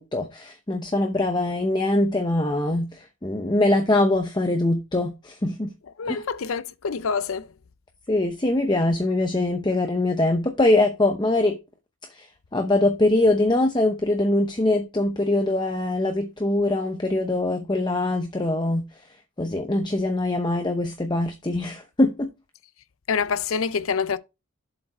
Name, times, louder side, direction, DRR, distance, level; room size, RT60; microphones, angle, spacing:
voice 1, 0.0-5.7 6.1-6.2 8.1-11.6 12.1-18.8 19.4-22.3, left 2 dB, 20° left, 0.7 m, -23 dB
voice 2, 6.0-7.5 23.1-24.2, left 5 dB, 85° left, 0.6 m, -26 dB
7.4 x 5.0 x 4.4 m
head